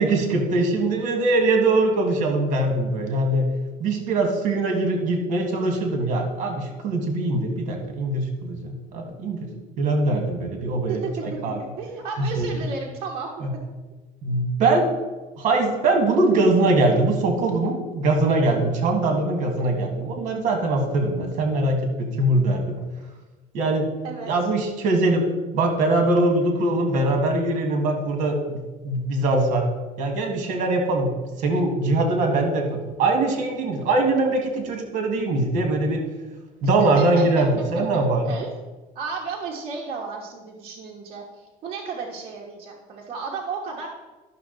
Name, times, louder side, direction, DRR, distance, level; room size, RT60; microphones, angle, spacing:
voice 1, 0.0-3.5 3.8-9.5 9.8-11.6 12.2-12.6 13.4-13.5 14.2-14.9 15.4-22.8 23.5-23.9 24.2-25.2 25.5-29.7 30.0-36.0 36.6-38.3, right 2 dB, 55° right, 4 dB, 1.7 m, -22 dB
voice 2, 10.9-13.3 24.0-24.3 36.8-37.2 38.2-38.5 38.9-43.9, right 5 dB, 35° right, -3 dB, 1.3 m, -33 dB
11.5 x 6.2 x 3.9 m, 1.2 s
cardioid pair, 160°, 16 cm